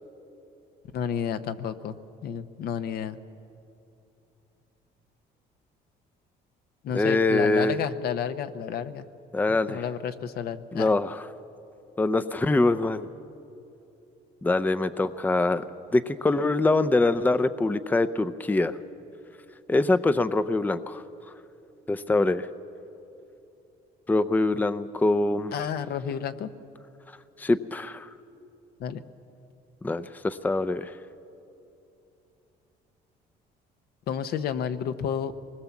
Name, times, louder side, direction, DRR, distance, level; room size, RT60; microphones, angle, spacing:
voice 1, 0.9-2.0 2.2-3.2 6.8-9.0 9.5-10.9 25.5-26.5 28.8-29.0 34.1-35.3, left 8 dB, 65° left, 10 dB, 0.9 m, -31 dB
voice 2, 6.9-7.8 9.3-9.8 10.7-11.2 12.0-13.1 14.4-15.6 15.9-18.7 19.7-21.0 21.9-22.5 24.1-25.5 27.4-28.1 29.8-30.9, left 2 dB, 10° left, 13 dB, 0.6 m, -24 dB
24.0 x 20.5 x 7.2 m, 2.8 s
cardioid pair, 110°, 17 cm